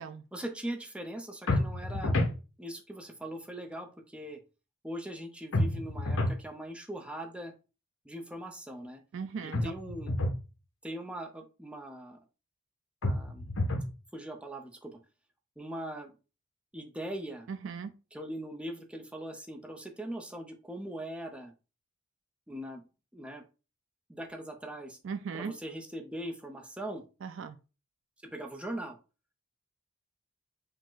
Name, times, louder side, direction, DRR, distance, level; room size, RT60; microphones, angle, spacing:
voice 1, 0.3-2.2 2.6-4.4 4.8-7.5 8.0-9.0 9.4-10.1 10.8-12.2 13.0-13.5 14.1-15.0 15.6-16.1 16.7-17.5 18.1-21.5 22.5-22.8 23.1-23.4 24.1-25.0 25.3-27.0 28.2-29.0, right 1 dB, 5° right, 0.5 m, -40 dB
sound 1, 1.5-2.4 5.5-6.4 9.5-10.4 13.0-13.9, left 1 dB, 70° left, 0.8 m, -29 dB
voice 2, 9.1-9.7 17.5-17.9 25.0-25.5 27.2-27.6, right 5 dB, 60° right, 0.3 m, -38 dB
4.9 x 2.1 x 3.8 m
head